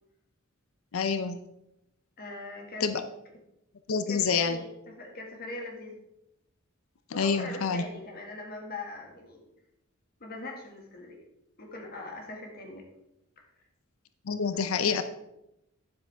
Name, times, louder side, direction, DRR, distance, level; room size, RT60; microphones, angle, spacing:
voice 1, 0.9-1.4 2.8-3.0 3.9-4.6 7.1-7.8 14.3-15.0, left 5 dB, 70° left, 10 dB, 0.6 m, -27 dB
voice 2, 2.2-2.9 4.1-6.0 7.1-9.4 10.2-11.2 11.6-12.8 13.4-13.5, left 2 dB, 45° left, 0 dB, 1.9 m, -41 dB
9.8 x 7.6 x 3.5 m, 0.86 s
head